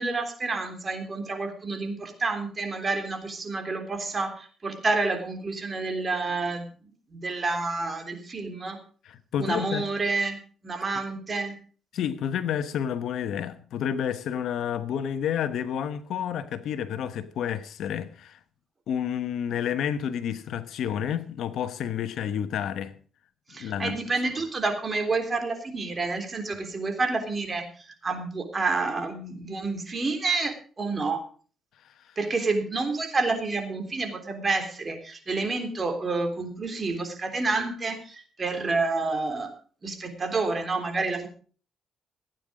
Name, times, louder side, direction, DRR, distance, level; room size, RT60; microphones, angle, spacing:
voice 1, 0.0-8.8 9.4-11.5 23.5-31.2 32.2-39.5 39.8-41.3, right 3 dB, 35° right, 3.5 m, -29 dB
voice 2, 9.0-9.9 11.9-18.4 18.9-23.0 23.5-24.0 31.8-32.1, left 9 dB, 75° left, 1.1 m, -30 dB
16.5 x 9.3 x 5.1 m
cardioid pair, 90°, 0 cm